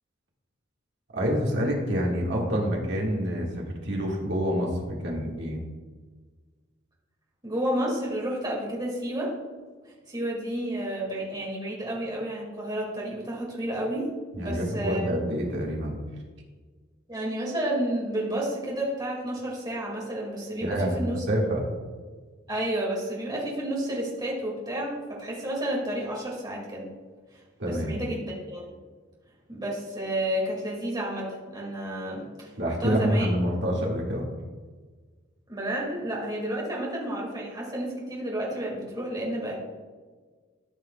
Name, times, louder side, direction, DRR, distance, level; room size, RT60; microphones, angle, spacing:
voice 1, 1.1-5.6 14.4-16.0 20.6-21.0 21.3-21.6 27.6-28.0 32.6-34.3, equal, 60° right, -2 dB, 1.8 m, -27 dB
voice 2, 7.4-9.3 9.8-14.1 14.4-15.1 17.1-21.2 22.5-26.9 27.3-28.6 29.5-32.5 32.8-33.3 35.5-39.6, right 1 dB, 20° right, -4 dB, 2.2 m, -31 dB
14.0 x 5.9 x 2.3 m, 1.5 s
head